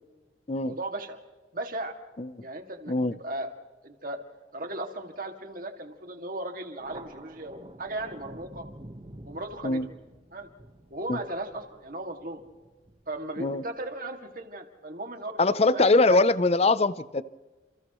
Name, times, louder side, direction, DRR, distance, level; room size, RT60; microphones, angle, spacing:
voice 1, 0.6-1.2 1.5-1.9 2.4-3.5 3.8-4.2 4.5-8.7 9.2-9.8 10.3-10.5 10.9-12.4 13.1-15.4 15.7-16.2, right 2 dB, 45° right, 4 dB, 2.2 m, -36 dB
Thunder, 6.8-13.8, right 1 dB, 30° right, 1.3 m, -49 dB
voice 2, 15.4-17.2, left 2 dB, 35° left, 15 dB, 0.6 m, -22 dB
30.0 x 28.5 x 3.1 m, 1.2 s
head